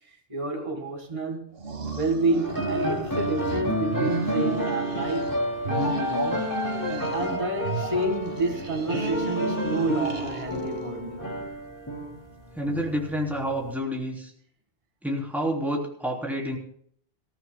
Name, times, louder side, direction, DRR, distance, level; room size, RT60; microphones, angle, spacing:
voice 1, 0.3-1.5 1.9-5.3 5.6-6.5 7.1-11.2 12.9-13.0, right 2 dB, 30° right, 1.9 m, -29 dB
sound 1, 1.6-3.6 3.9-5.4 5.6-7.4 7.6-10.8, right 3 dB, 60° right, 1.7 m, -34 dB
sound 2, 2.4-13.7, equal, 15° left, 2.7 m, -30 dB
voice 2, 12.6-14.3 15.0-16.6, equal, ahead, 3.5 m, -29 dB
26.0 x 14.5 x 2.3 m
omnidirectional pair, 1.1 m